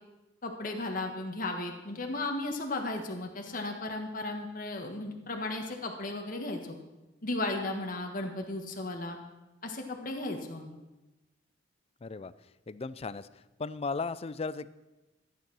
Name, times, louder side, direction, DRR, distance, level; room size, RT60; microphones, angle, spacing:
voice 1, 0.4-6.8 7.2-9.2 9.6-10.8, left 2 dB, 50° left, 3 dB, 1.5 m, -35 dB
voice 2, 12.0-12.3 12.7-14.7, left 4 dB, 35° left, 17 dB, 0.4 m, -36 dB
13.5 x 9.3 x 6.2 m, 1.0 s
head